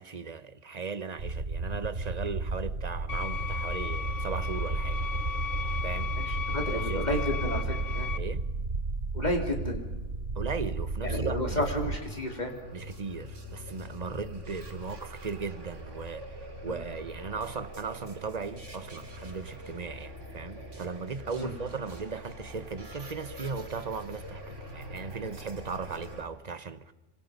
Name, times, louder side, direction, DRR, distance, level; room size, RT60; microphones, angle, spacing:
voice 1, 0.0-5.0 5.8-6.2 6.7-7.4 8.2-8.5 10.3-11.6 12.7-26.9, right 5 dB, 35° right, 1.1 m, -37 dB
sound 1, 1.2-12.0, right 3 dB, 55° right, 1.6 m, -33 dB
sound 2, 3.1-8.2, left 8 dB, 90° left, 1.3 m, -36 dB
voice 2, 6.2-7.7 7.9-8.1 9.1-9.8 11.0-12.5 16.6-16.7 21.4-21.5, left 1 dB, 35° left, 3.8 m, -31 dB
sound 3, 11.6-26.2, equal, 85° right, 3.0 m, -44 dB
26.5 x 25.5 x 5.4 m
omnidirectional pair, 1.2 m